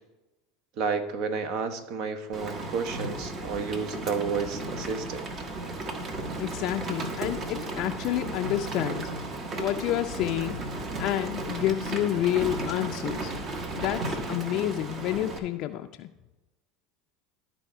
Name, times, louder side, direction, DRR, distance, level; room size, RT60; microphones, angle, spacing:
voice 1, 0.8-5.3, right 5 dB, 60° right, 11 dB, 0.9 m, -31 dB
Rain, 2.3-15.4, right 2 dB, 40° right, 1.2 m, -34 dB
voice 2, 6.4-9.1 9.6-10.6 11.0-13.3 13.8-16.1, left 13 dB, 55° left, 6 dB, 0.3 m, -29 dB
12.0 x 4.2 x 4.5 m, 1.1 s
hypercardioid pair, 85°, 0 cm